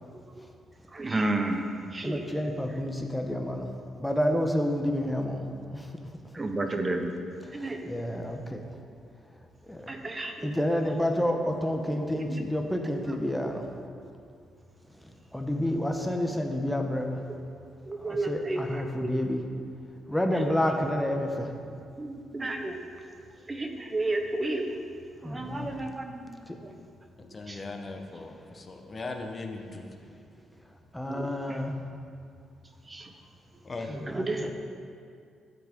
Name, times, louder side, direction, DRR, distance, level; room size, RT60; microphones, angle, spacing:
voice 1, 0.9-1.7 1.9-2.3 6.3-7.2 7.5-7.8 9.9-10.6 10.8-10.9 11.9-12.4 12.8-13.3 13.7-13.8 17.9-19.2 20.3-20.7 21.9-22.9 23.5-24.8 25.2-26.7 27.5-27.6 31.0-31.6 32.8-33.1 33.9-34.5, right 2 dB, 25° right, 5 dB, 0.8 m, -33 dB
voice 2, 2.0-3.7 4.0-5.9 7.5-8.6 9.7-9.9 10.4-13.7 15.3-17.2 18.0-19.4 20.1-21.5 25.2-25.8 26.5-26.6 30.9-31.7 33.9-34.5, left 1 dB, 5° left, 3 dB, 1.0 m, -29 dB
voice 3, 27.2-29.9 33.6-33.9, left 3 dB, 30° left, 3 dB, 1.0 m, -39 dB
11.5 x 7.4 x 3.7 m, 2.4 s
cardioid pair, 90°, 0 cm